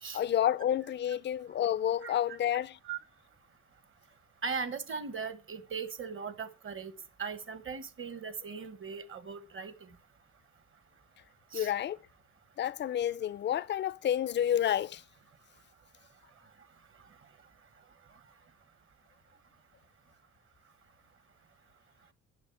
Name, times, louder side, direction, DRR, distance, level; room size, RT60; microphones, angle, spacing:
voice 1, 0.1-2.8 11.5-12.0 12.6-15.0, left 10 dB, 40° left, 0.4 m, -30 dB
voice 2, 4.4-6.9 7.2-9.9 11.5-11.7, right 5 dB, 40° right, 1.1 m, -38 dB
8.9 x 5.8 x 5.7 m
cardioid pair, 90°, 30 cm